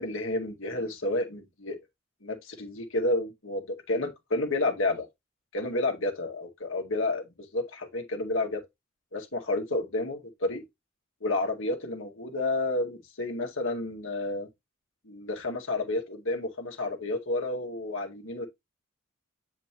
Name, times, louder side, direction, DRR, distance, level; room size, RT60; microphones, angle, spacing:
voice 1, 0.0-1.8 2.2-5.1 5.5-7.2 7.5-8.6 9.1-10.6 11.2-14.5 15.1-18.5, left 2 dB, 80° left, 2.1 m, -30 dB
8.7 x 5.0 x 3.0 m
head